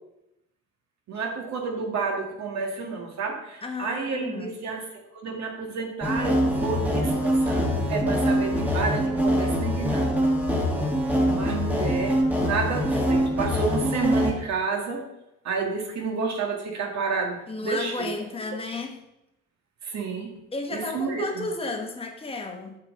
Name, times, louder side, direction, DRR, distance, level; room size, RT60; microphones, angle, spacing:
voice 1, 1.1-4.8 5.2-10.2 11.3-15.0 15.4-18.1 19.8-20.3 20.7-21.5, right 4 dB, 55° right, 1 dB, 2.0 m, -30 dB
voice 2, 3.6-4.6 17.5-19.0 20.5-22.8, left 3 dB, 15° left, 3 dB, 1.2 m, -33 dB
sound 1, 6.0-14.3, equal, 5° right, 1.4 m, -24 dB
9.5 x 7.4 x 3.8 m, 0.87 s
cardioid pair, 150°, 32 cm